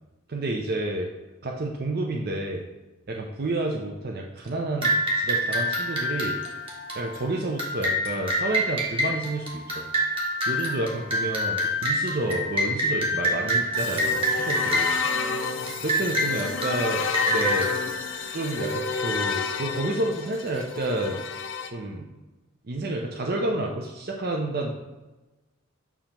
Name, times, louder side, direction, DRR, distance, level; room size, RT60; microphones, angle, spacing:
voice 1, 0.3-1.1 1.4-2.6 3.1-6.4 6.9-9.9 10.5-15.0 15.8-17.0 17.3-17.7 18.3-21.2 21.7-22.1 22.7-24.7, right 2 dB, 45° right, 0 dB, 0.6 m, -30 dB
sound 1, 4.8-18.9, equal, 25° right, 1.2 m, -27 dB
sound 2, 13.8-21.7, left 5 dB, 65° left, 0.5 m, -30 dB
7.0 x 2.9 x 5.7 m, 1.1 s
head